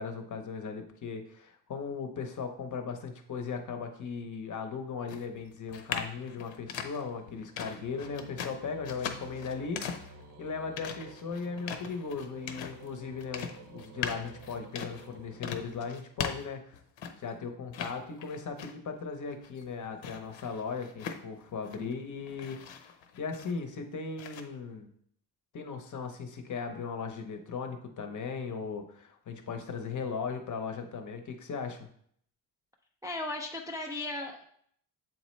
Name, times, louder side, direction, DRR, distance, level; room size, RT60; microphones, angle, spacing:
voice 1, 0.0-10.1 10.4-16.8 17.2-22.6 23.2-24.9 25.5-31.9, left 5 dB, 40° left, 5 dB, 0.7 m, -37 dB
sound 1, 5.0-17.3 17.7-19.0 19.3-21.9 22.3-23.8 24.2-24.4, left 7 dB, 80° left, 0.8 m, -40 dB
sound 2, 5.4-16.4, right 3 dB, 45° right, 0.8 m, -52 dB
voice 2, 33.0-34.4, left 2 dB, 10° right, 0 dB, 0.3 m, -36 dB
7.7 x 4.2 x 3.1 m, 0.63 s
wide cardioid pair, 170°, 44 cm